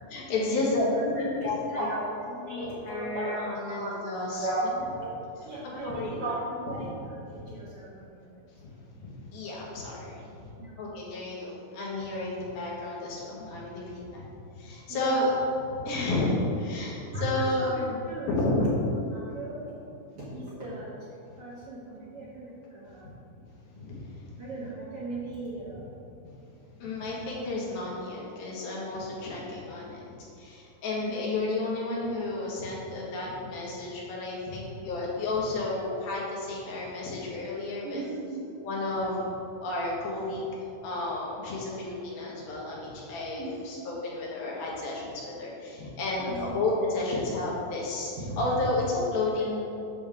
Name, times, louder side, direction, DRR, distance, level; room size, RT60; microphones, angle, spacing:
voice 1, 0.1-1.6 2.3-4.5 5.6-6.4 6.8-6.9 8.6-10.3 10.8-14.2 14.5-15.3 15.8-18.0 18.3-18.7 23.7-24.1 25.7-25.8 26.8-30.1 30.4-38.0 38.6-39.3 39.6-48.1 48.4-49.6, left 2 dB, 75° left, -5 dB, 3.3 m, -31 dB
voice 2, 1.1-3.9 4.4-5.2 5.4-6.3 6.6-8.2 10.6-10.8 14.9-15.3 17.1-18.7 19.1-19.6 20.1-20.9 21.4-23.0 24.4-25.9 31.0-31.2 34.5-34.6 37.8-38.5 43.3-43.6 46.2-46.5 48.2-48.4, right 1 dB, 55° right, -9 dB, 1.7 m, -36 dB
8.7 x 7.1 x 3.6 m, 2.7 s
omnidirectional pair, 4.3 m